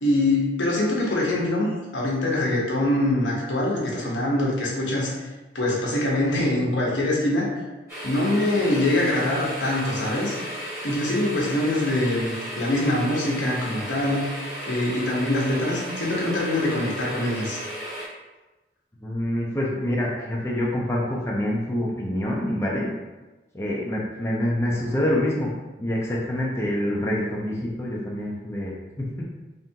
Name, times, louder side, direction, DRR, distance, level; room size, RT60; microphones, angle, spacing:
voice 1, 0.0-5.1 5.5-7.5 8.0-10.3 10.8-14.4 14.7-17.6, left 1 dB, 85° left, -4 dB, 1.0 m, -24 dB
sound 1, 7.9-18.1, equal, 15° right, 1.2 m, -34 dB
voice 2, 19.0-22.9 23.5-25.5 25.8-29.3, left 1 dB, 15° left, -4 dB, 0.5 m, -26 dB
3.7 x 3.4 x 2.8 m, 1.1 s
head